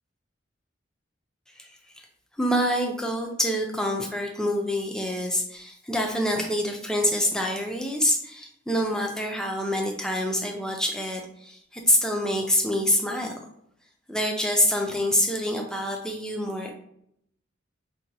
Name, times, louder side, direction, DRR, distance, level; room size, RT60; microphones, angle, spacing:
voice 1, 2.4-13.4 14.1-16.7, equal, 5° left, 1 dB, 0.4 m, -26 dB
2.7 x 2.2 x 4.0 m, 0.73 s
head